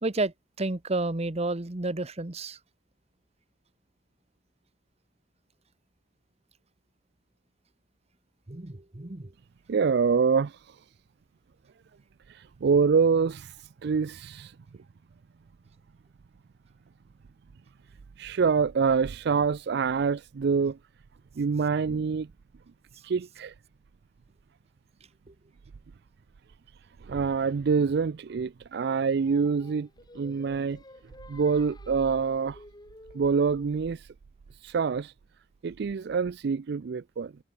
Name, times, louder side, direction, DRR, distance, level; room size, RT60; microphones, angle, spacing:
voice 1, 0.0-2.6 8.5-9.3, right 2 dB, 35° right, 1.1 m, -31 dB
voice 2, 9.7-10.8 12.3-13.6 13.8-14.5 18.2-20.8 21.4-22.3 23.0-23.5 27.0-29.9 30.1-30.8 31.3-32.6 33.1-34.1 34.6-35.1 35.6-37.3, right 5 dB, 60° right, 0.4 m, -26 dB
Singing, 28.7-33.9, left 1 dB, 25° left, 3.5 m, -51 dB
head